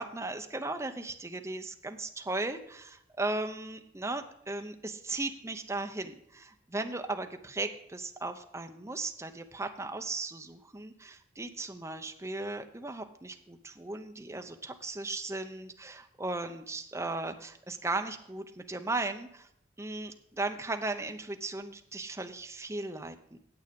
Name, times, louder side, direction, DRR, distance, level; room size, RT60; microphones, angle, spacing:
voice 1, 0.0-19.5 19.8-23.4, right 2 dB, 15° right, 6 dB, 0.7 m, -37 dB
9.2 x 8.0 x 5.2 m, 0.74 s
head